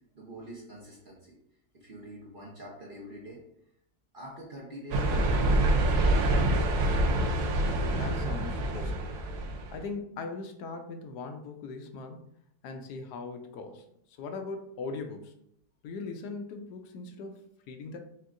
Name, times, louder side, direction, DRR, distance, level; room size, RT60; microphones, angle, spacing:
voice 1, 0.1-1.4 1.7-3.4 4.1-7.0, right 1 dB, 45° right, -4 dB, 0.8 m, -46 dB
sound 1, 4.9-9.8, right 1 dB, 75° right, 1.1 m, -26 dB
voice 2, 7.4-12.2 12.6-13.8 14.2-15.3 15.8-18.0, left 4 dB, 75° left, 5 dB, 1.1 m, -40 dB
4.4 x 3.6 x 2.5 m, 0.73 s
omnidirectional pair, 1.8 m